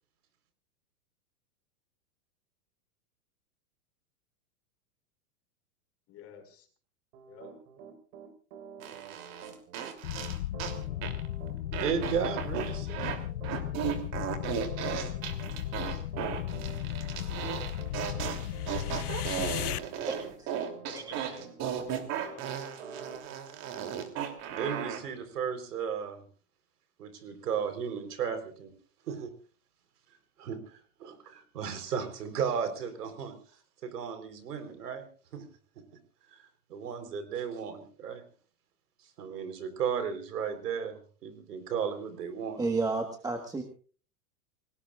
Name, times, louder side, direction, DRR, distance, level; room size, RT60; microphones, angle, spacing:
voice 1, 6.1-6.7 7.3-7.5 14.0-14.2 20.9-22.5, left 8 dB, 30° left, 6 dB, 5.2 m, -49 dB
Piano, 7.1-22.3 22.8-23.2, right 7 dB, 60° right, 5.1 m, -48 dB
sound 1, 8.8-10.8 11.0-11.3 11.7-13.2 13.4-25.0, right 9 dB, 35° right, 3.1 m, -36 dB
sound 2, 10.0-19.8, left 13 dB, 75° left, 0.9 m, -35 dB
voice 2, 11.7-13.2 24.5-26.2 27.0-28.7 29.1-29.3 30.4-33.4 33.8-35.0 35.3-35.5 35.8-35.9 36.3-38.2 39.2-42.6, right 7 dB, 85° right, 9 dB, 4.2 m, -35 dB
voice 3, 19.4-20.5 20.9-21.3 42.6-43.6, right 3 dB, 10° right, 5 dB, 1.5 m, -33 dB
28.5 x 19.0 x 2.5 m, 0.40 s
supercardioid pair, 145°, 46 cm